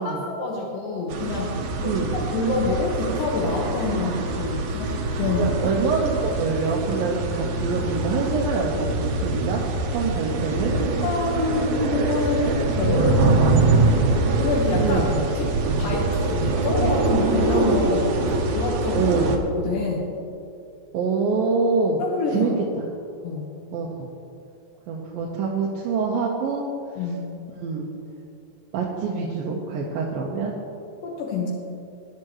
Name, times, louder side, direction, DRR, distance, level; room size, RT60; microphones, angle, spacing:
voice 1, 0.0-5.5 11.0-14.1 14.4-15.1 15.4-15.5 15.8-16.4 16.6-19.1 19.5-20.1 22.0-22.6 23.2-23.5 27.0-27.3 31.0-31.5, left 2 dB, 75° left, -3 dB, 2.9 m, -26 dB
sound 1, 1.1-19.4, right 3 dB, 65° right, 2.2 m, -24 dB
voice 2, 1.8-2.1 3.9-4.1 5.4-9.6 9.9-10.7 12.9-13.0 14.8-15.1 16.3-16.5 18.9-19.4 20.9-22.0 22.3-22.5 22.8-22.9 23.7-24.1 24.9-26.7 27.6-27.9 28.7-30.5, right 4 dB, 85° right, -3 dB, 2.8 m, -25 dB
20.0 x 11.0 x 3.1 m, 2.6 s
omnidirectional pair, 4.0 m